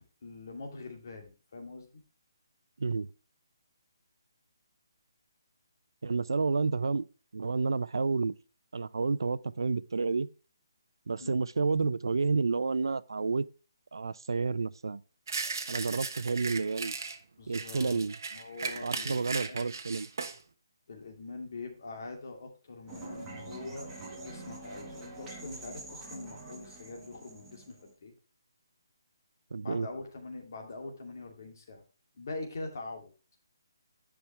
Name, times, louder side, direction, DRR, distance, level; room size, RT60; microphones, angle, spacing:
voice 1, 0.2-2.0 11.2-11.4 17.4-18.0 18.3-19.8 20.9-28.1 29.6-31.8 32.1-33.1, left 3 dB, 45° left, 2.5 m, -43 dB
voice 2, 6.0-7.0 7.3-8.3 8.7-10.3 11.1-13.4 13.9-15.0 15.7-16.9 17.5-18.1 18.8-20.1 29.5-29.9, right 4 dB, 90° right, 0.6 m, -30 dB
sound 1, 15.3-17.2 17.5-20.4, right 4 dB, 50° right, 1.2 m, -37 dB
sound 2, 22.9-27.9, right 2 dB, 10° right, 1.6 m, -45 dB
10.5 x 6.2 x 3.3 m
hypercardioid pair, 175°, 2 cm